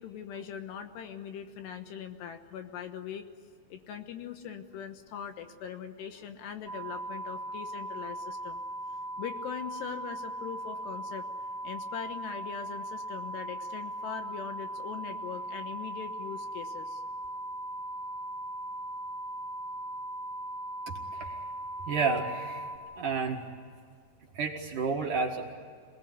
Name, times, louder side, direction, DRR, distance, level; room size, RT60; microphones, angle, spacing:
voice 1, 0.0-3.2 3.7-8.6 9.2-11.2 11.6-17.0, left 8 dB, 75° left, 7 dB, 3.2 m, -41 dB
sound 1, 6.7-22.8, right 1 dB, 15° left, 5.2 m, -39 dB
voice 2, 20.9-21.4 21.9-22.7 23.0-23.4 24.3-25.5, right 4 dB, 55° right, 1 dB, 2.7 m, -31 dB
26.5 x 20.0 x 9.7 m, 2.1 s
omnidirectional pair, 5.3 m